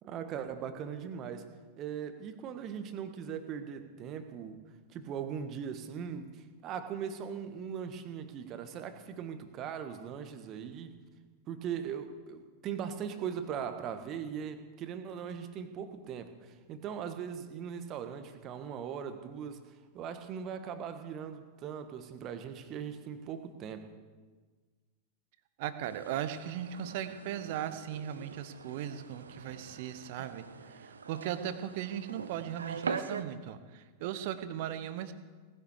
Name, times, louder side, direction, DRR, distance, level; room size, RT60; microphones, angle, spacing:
voice 1, 0.0-1.5 1.8-4.6 4.9-10.9 11.5-19.6 19.9-23.9, right 7 dB, 35° right, 8 dB, 1.6 m, -40 dB
voice 2, 25.6-35.1, right 10 dB, 50° right, 12 dB, 1.1 m, -38 dB
sound 1, 25.8-33.2, right 5 dB, 70° right, 0.9 m, -43 dB
18.5 x 10.5 x 6.7 m, 1.4 s
figure-of-eight pair, 90°, 0 cm